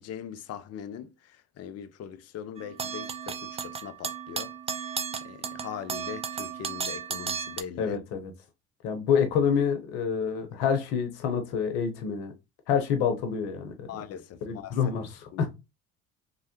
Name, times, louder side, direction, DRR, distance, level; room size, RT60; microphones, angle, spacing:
voice 1, 0.0-4.9 5.2-8.0 13.9-14.8 15.3-15.5, left 8 dB, 45° left, 0.5 m, -41 dB
sound 1, 2.6-7.6, right 7 dB, 20° right, 0.3 m, -34 dB
voice 2, 7.8-8.3 8.8-12.3 12.7-13.9 14.5-15.5, left 7 dB, 75° left, 0.9 m, -27 dB
3.1 x 2.3 x 2.9 m
hypercardioid pair, 65°, 37 cm